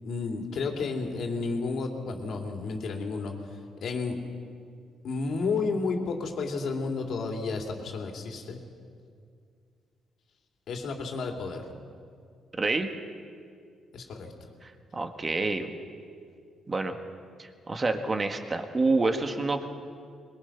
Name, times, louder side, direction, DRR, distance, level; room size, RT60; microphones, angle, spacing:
voice 1, 0.0-4.2 5.0-8.6 10.7-11.6 13.9-14.3, left 4 dB, 65° left, 2 dB, 3.0 m, -32 dB
voice 2, 12.6-12.9 14.6-15.7 16.7-17.0 17.4-19.7, right 3 dB, 30° right, 6 dB, 1.8 m, -28 dB
22.0 x 21.5 x 5.9 m, 2.2 s
cardioid pair, 90°, 0 cm